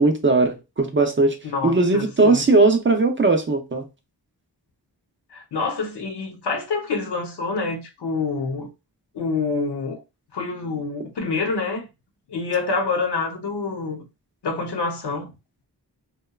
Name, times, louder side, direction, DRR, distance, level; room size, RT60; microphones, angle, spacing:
voice 1, 0.0-1.4 1.6-3.8, right 3 dB, 30° right, 0.4 m, -18 dB
voice 2, 1.4-2.4 5.3-8.7 9.1-10.0 10.3-11.9 12.3-14.0 14.4-15.3, left 4 dB, 90° left, 0.8 m, -27 dB
2.9 x 2.2 x 2.2 m
wide cardioid pair, 110°, 39 cm